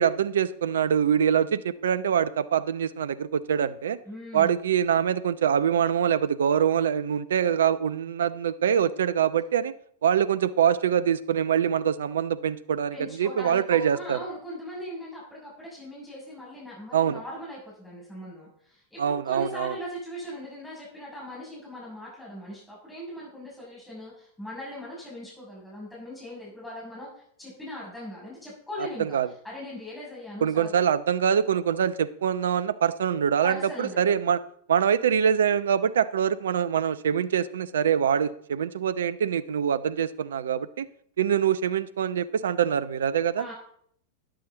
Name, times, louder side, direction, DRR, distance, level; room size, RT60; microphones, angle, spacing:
voice 1, 0.0-4.0 4.3-9.7 10.0-14.2 16.9-17.2 19.0-19.7 29.0-29.3 30.4-34.4 34.7-40.9 41.2-43.4, right 8 dB, 65° right, 16 dB, 0.6 m, -24 dB
voice 2, 4.0-4.6 12.9-27.1 27.4-30.7 33.4-34.1 43.4-43.5, equal, 5° left, -5 dB, 6.5 m, -39 dB
13.0 x 10.5 x 3.9 m, 0.64 s
figure-of-eight pair, 90°, 0 cm